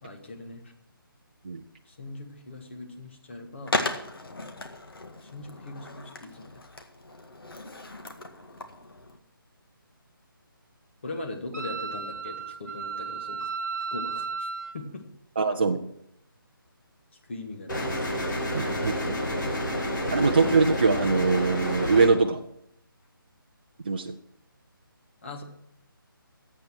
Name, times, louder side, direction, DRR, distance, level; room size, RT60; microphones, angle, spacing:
voice 1, 0.0-0.6 1.9-3.8 5.2-6.6 11.0-13.5 13.9-14.5 14.7-15.1 17.3-18.8 25.2-25.4, left 2 dB, 30° left, 3 dB, 1.6 m, -40 dB
Skateboard, 3.7-9.2, left 2 dB, 80° left, 1.9 m, -36 dB
Wind instrument woodwind instrument, 11.5-14.8, right 5 dB, 45° right, 1.1 m, -34 dB
voice 2, 15.4-15.8 18.5-19.2 20.1-22.4 23.9-24.1, right 4 dB, 25° right, 3 dB, 0.5 m, -23 dB
sound 1, 17.7-22.1, equal, 55° left, 3.9 m, -29 dB
12.0 x 8.4 x 6.1 m, 0.74 s
hypercardioid pair, 175°, 12 cm